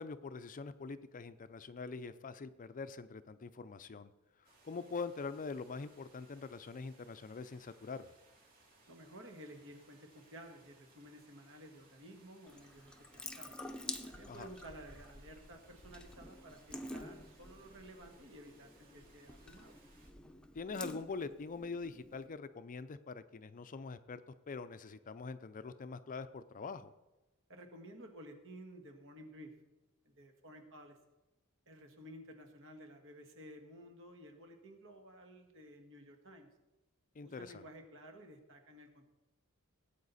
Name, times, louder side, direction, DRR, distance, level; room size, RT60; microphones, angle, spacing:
voice 1, 0.0-4.1 4.6-8.1 14.3-14.5 20.5-24.2 24.5-26.9 37.2-37.6, left 4 dB, 40° left, 12 dB, 0.5 m, -44 dB
sound 1, 4.4-20.1, right 2 dB, 40° right, 2.8 m, -66 dB
voice 2, 8.9-13.6 14.1-19.8 27.5-29.5 30.2-31.0 31.7-36.5 37.2-39.0, right 1 dB, 60° right, 4 dB, 1.7 m, -54 dB
Water tap faucet / Sink (filling or washing) / Drip, 12.5-22.3, left 1 dB, 5° left, 0.7 m, -49 dB
18.0 x 8.6 x 4.1 m, 1.1 s
head